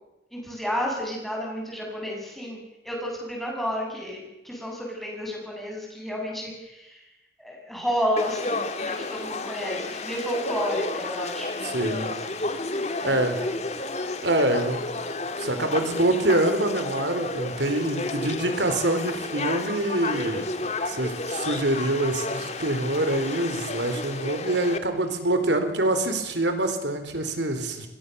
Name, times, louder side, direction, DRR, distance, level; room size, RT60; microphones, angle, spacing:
voice 1, 0.3-7.0 7.4-12.0 13.0-13.5, equal, ahead, -1 dB, 7.9 m, -31 dB
Conversation / Crowd, 8.2-24.8, left 2 dB, 40° left, 1.9 m, -31 dB
voice 2, 11.6-12.1 13.0-13.4 14.2-14.8 15.4-20.5 20.9-27.9, right 1 dB, 90° right, 8 dB, 3.9 m, -25 dB
29.5 x 22.5 x 7.0 m, 0.95 s
head